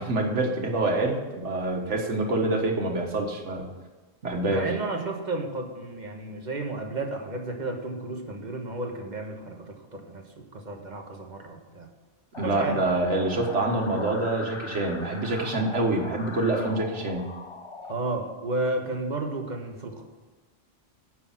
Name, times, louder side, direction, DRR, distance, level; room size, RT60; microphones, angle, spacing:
voice 1, 0.0-3.7 4.2-4.7 12.4-17.3, right 2 dB, 85° right, 1 dB, 1.8 m, -26 dB
voice 2, 4.5-11.9 12.4-13.0 17.9-20.0, right 2 dB, 40° right, 3 dB, 1.4 m, -32 dB
sound 1, 12.3-17.9, left 3 dB, 30° left, 0.6 m, -40 dB
9.8 x 6.3 x 7.4 m, 1.3 s
omnidirectional pair, 1.2 m